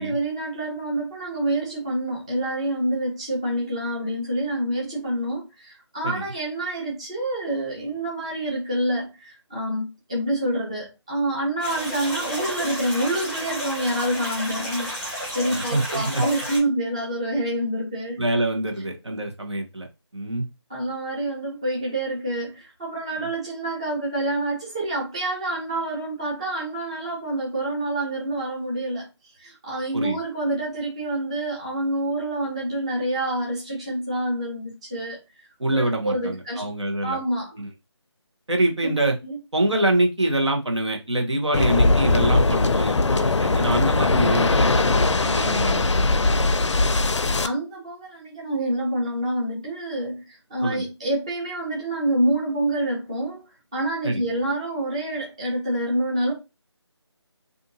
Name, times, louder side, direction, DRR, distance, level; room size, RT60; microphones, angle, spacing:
voice 1, 0.0-18.2 20.7-29.1 29.4-35.4 35.7-36.6 37.0-37.5 38.8-39.4 47.4-53.4 53.7-56.3, right 1 dB, 15° right, 0.6 m, -27 dB
sound 1, 11.6-16.6, equal, 5° left, 0.9 m, -32 dB
voice 2, 15.5-16.2 18.2-19.9 20.1-20.5 23.2-23.3 29.9-30.2 35.6-37.2 37.6-37.7 38.5-39.2 39.5-46.4 50.6-50.8 54.0-54.2, right 1 dB, 75° right, 1.1 m, -25 dB
Waves surf, 41.5-47.5, left 3 dB, 80° left, 0.4 m, -20 dB
2.6 x 2.5 x 2.7 m
figure-of-eight pair, 165°, 15 cm